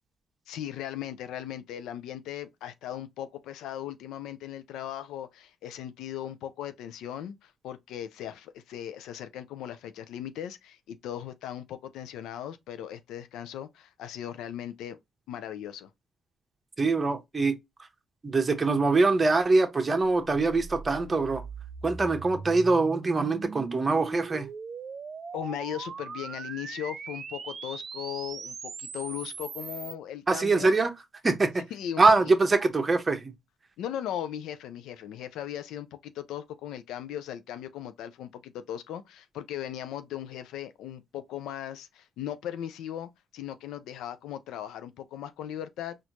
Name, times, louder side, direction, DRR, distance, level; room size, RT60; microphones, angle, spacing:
voice 1, 0.5-15.0 15.3-15.9 25.3-30.7 31.7-32.0 33.8-46.0, left 10 dB, 85° left, 0.4 m, -38 dB
voice 2, 16.8-17.6 18.2-21.4 21.8-24.5 30.3-30.9 31.2-31.6 32.0-33.3, right 3 dB, 25° right, 0.8 m, -23 dB
sound 1, 20.0-29.9, right 5 dB, 45° right, 0.3 m, -40 dB
4.3 x 2.5 x 2.8 m
cardioid pair, 90°, 0 cm